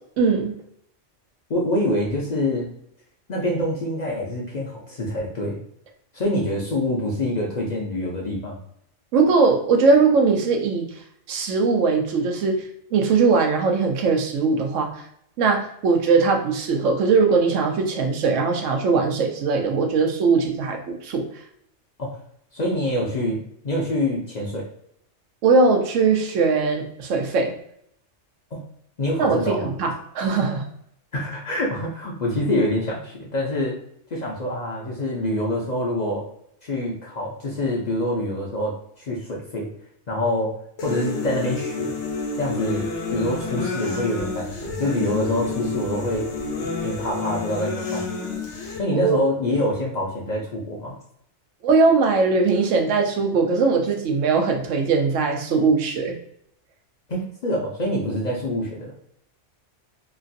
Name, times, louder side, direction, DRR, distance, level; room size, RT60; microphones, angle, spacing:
voice 1, 0.2-0.5 9.1-10.9 11.3-12.6 12.9-15.0 15.4-21.2 25.4-27.5 29.2-30.6 48.9-49.2 51.6-56.2, right 4 dB, 85° right, 3 dB, 1.0 m, -20 dB
voice 2, 1.5-2.7 3.3-5.6 6.1-8.6 22.0-22.2 22.5-24.7 28.5-28.6 29.0-29.7 31.1-33.8 34.1-36.2 36.6-39.7 40.1-41.9 42.4-46.3 46.8-48.1 48.8-50.9 57.1-58.9, left 1 dB, 50° left, -3 dB, 0.5 m, -26 dB
sound 1, 40.8-48.8, left 4 dB, 70° left, 1.0 m, -29 dB
3.0 x 2.4 x 2.6 m, 0.70 s
omnidirectional pair, 1.3 m